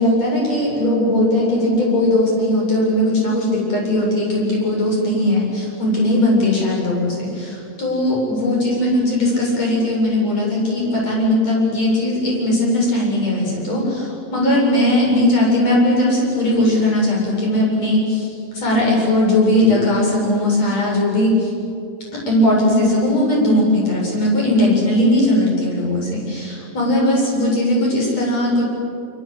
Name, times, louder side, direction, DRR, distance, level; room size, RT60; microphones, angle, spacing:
voice 1, 0.0-18.3 18.5-21.5 22.3-28.6, left 1 dB, 50° left, -3 dB, 8.6 m, -18 dB
26.0 x 25.5 x 8.4 m, 2.6 s
omnidirectional pair, 4.0 m